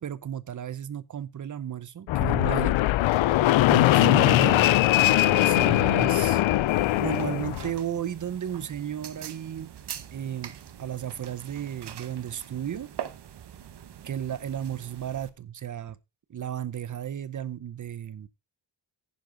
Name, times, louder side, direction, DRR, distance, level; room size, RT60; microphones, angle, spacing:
voice 1, 0.0-2.8 3.7-6.4 7.0-9.7 10.1-10.5 10.8-12.9 14.0-16.0 16.3-18.3, right 10 dB, 40° right, 0.7 m, -34 dB
Fixed-wing aircraft airplane, 2.1-7.7, left 16 dB, 75° left, 0.6 m, -21 dB
sound 1, 6.7-15.3, right 9 dB, 60° right, 1.1 m, -43 dB
10.5 x 10.0 x 3.8 m
wide cardioid pair, 180°, 47 cm